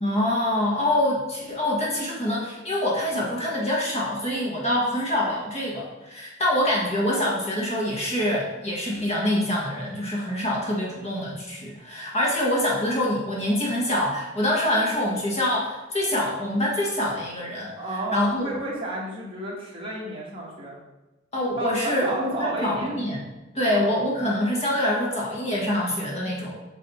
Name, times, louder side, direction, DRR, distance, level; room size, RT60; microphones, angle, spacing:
voice 1, 0.0-17.7 18.1-18.4 21.3-23.2 23.5-26.6, left 1 dB, 35° left, -4 dB, 1.6 m, -25 dB
voice 2, 17.7-20.8 21.6-23.0 23.6-23.9, right 1 dB, 30° right, -4 dB, 1.6 m, -32 dB
7.0 x 3.2 x 4.2 m, 1.1 s
head